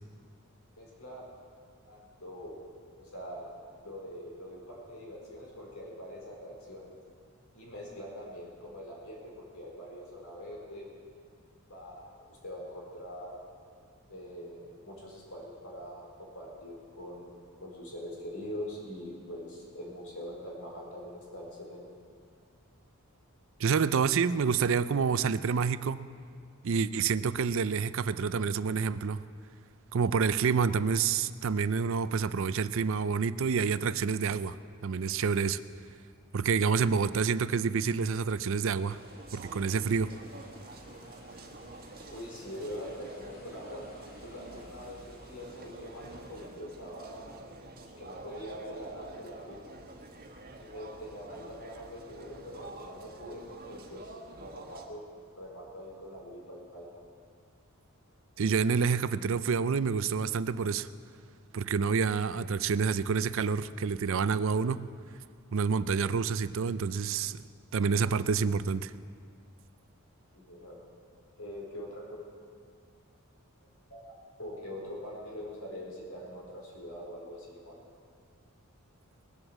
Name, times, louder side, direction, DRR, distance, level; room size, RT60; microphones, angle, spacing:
voice 1, 0.8-1.3 1.8-2.6 3.0-3.5 3.8-6.9 7.5-10.9 11.7-13.4 14.1-17.3 17.6-21.9 42.1-43.9 44.2-47.4 47.8-49.7 50.6-57.0 70.3-70.8 71.4-72.2 73.9-74.1 74.4-77.8, equal, 75° left, -3 dB, 4.5 m, -43 dB
voice 2, 23.6-26.0 26.6-29.2 29.9-34.6 34.8-35.6 36.3-39.0 39.3-40.1 58.4-60.9 61.5-64.8 65.5-67.4 67.7-68.9, right 5 dB, 60° right, 15 dB, 0.4 m, -28 dB
sound 1, 38.7-46.5, left 1 dB, 45° left, 2.1 m, -58 dB
sound 2, 38.9-54.9, right 2 dB, 45° right, 1.4 m, -48 dB
20.5 x 7.9 x 7.3 m, 2.1 s
head